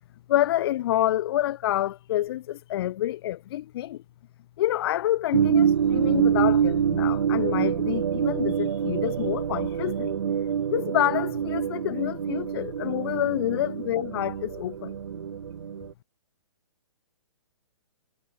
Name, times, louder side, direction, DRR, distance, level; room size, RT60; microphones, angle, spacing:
voice 1, 0.3-4.0 4.6-10.2 10.7-15.0, left 13 dB, 45° left, 4.7 m, -28 dB
sound 1, 5.3-15.9, right 8 dB, 65° right, 5.1 m, -26 dB
hypercardioid pair, 140°, 17 cm